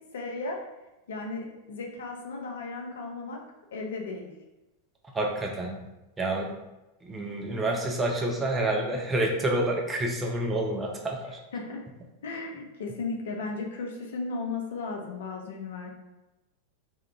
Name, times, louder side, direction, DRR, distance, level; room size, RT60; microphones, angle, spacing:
voice 1, 0.1-0.6 1.1-3.4 3.7-4.3 11.5-11.8 12.2-15.9, left 3 dB, 60° left, 1 dB, 0.4 m, -35 dB
voice 2, 5.1-5.9 6.2-6.6 7.0-11.4, right 1 dB, 15° right, 0 dB, 0.4 m, -28 dB
2.7 x 2.3 x 2.3 m, 1.0 s
figure-of-eight pair, 90°, 0 cm